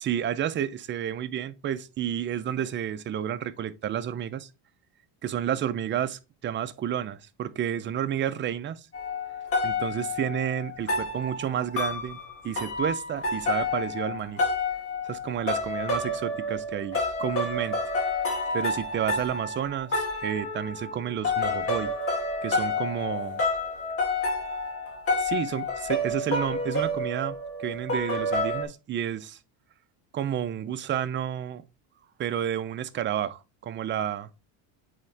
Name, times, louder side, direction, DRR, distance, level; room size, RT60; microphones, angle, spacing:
voice 1, 0.0-4.5 5.2-8.9 9.6-12.2 12.4-14.4 15.0-17.8 18.5-21.9 22.4-23.4 25.2-29.4 30.1-31.6 32.2-34.3, right 10 dB, 25° right, 0.4 m, -31 dB
sound 1, 8.9-28.6, left 2 dB, 30° left, 2.2 m, -29 dB
8.5 x 3.6 x 3.2 m
cardioid pair, 130°, 46 cm